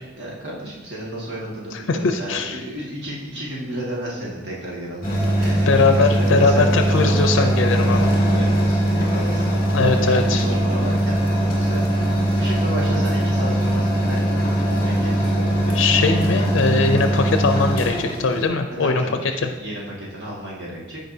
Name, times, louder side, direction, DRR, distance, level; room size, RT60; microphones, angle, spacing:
voice 1, 0.2-16.1 18.8-21.0, right 1 dB, 60° right, -5 dB, 1.8 m, -33 dB
voice 2, 1.7-2.6 5.7-8.1 9.7-10.4 15.7-19.0, left 4 dB, 80° left, 6 dB, 0.5 m, -20 dB
sound 1, 5.0-18.5, right 1 dB, 30° left, 2.3 m, -20 dB
15.0 x 5.0 x 2.7 m, 1.2 s
head